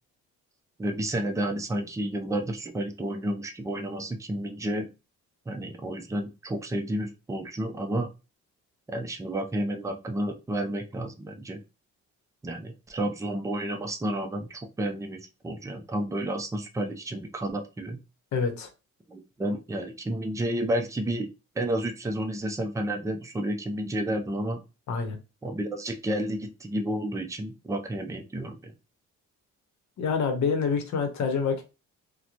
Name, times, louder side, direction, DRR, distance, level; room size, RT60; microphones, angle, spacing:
voice 1, 0.8-4.9 5.5-8.1 8.9-11.6 12.4-18.0 19.1-21.3 21.6-24.6 25.4-28.7, right 1 dB, 10° right, 4 dB, 0.5 m, -31 dB
voice 2, 18.3-18.7 24.9-25.2 30.0-31.6, left 5 dB, 65° left, 6 dB, 0.8 m, -27 dB
2.9 x 2.1 x 2.4 m, 0.29 s
cardioid pair, 90°, 30 cm